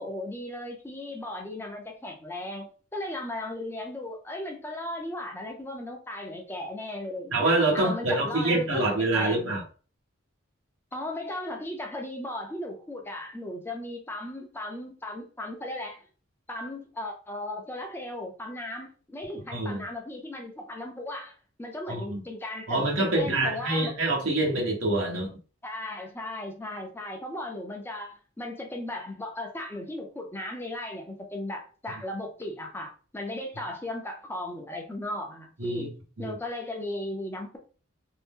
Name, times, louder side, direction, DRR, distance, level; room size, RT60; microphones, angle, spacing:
voice 1, 0.0-9.5 10.9-16.0 16.5-23.9 25.6-35.9 36.2-37.6, left 1 dB, 10° left, 0.5 m, -36 dB
voice 2, 7.3-9.6 19.5-19.8 21.9-22.2 22.7-25.3 35.6-35.9 36.2-36.4, right 2 dB, 80° right, 1.1 m, -26 dB
2.7 x 2.0 x 3.5 m
head